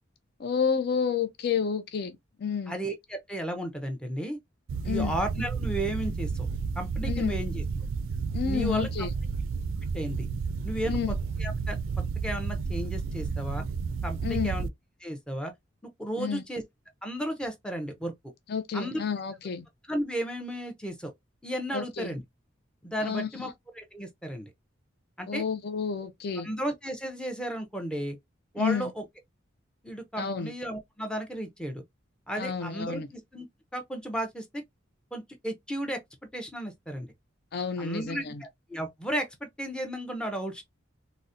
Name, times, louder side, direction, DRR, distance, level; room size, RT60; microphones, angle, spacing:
voice 1, 0.4-2.7 4.8-5.2 7.0-7.3 8.3-9.1 10.9-11.1 14.2-14.5 16.2-16.4 18.5-19.7 21.7-22.1 23.0-23.5 25.3-26.5 28.6-28.9 30.2-30.5 32.4-33.1 37.5-38.4, left 6 dB, 50° left, 0.4 m, -30 dB
voice 2, 2.7-4.4 4.8-6.5 6.8-7.6 8.5-8.9 9.9-10.3 10.6-11.0 11.4-11.8 12.2-13.7 14.0-14.7 15.0-15.5 16.0-16.6 17.0-18.1 18.7-19.0 19.9-21.1 21.4-22.2 22.8-24.5 25.2-25.4 26.4-28.2 28.5-29.0 29.8-31.8 32.3-33.5 33.7-34.6 35.1-36.0 36.3-37.1 37.8-40.6, right 1 dB, 5° left, 0.6 m, -34 dB
sound 1, 4.7-14.7, right 5 dB, 80° right, 0.3 m, -31 dB
3.8 x 2.1 x 2.6 m
head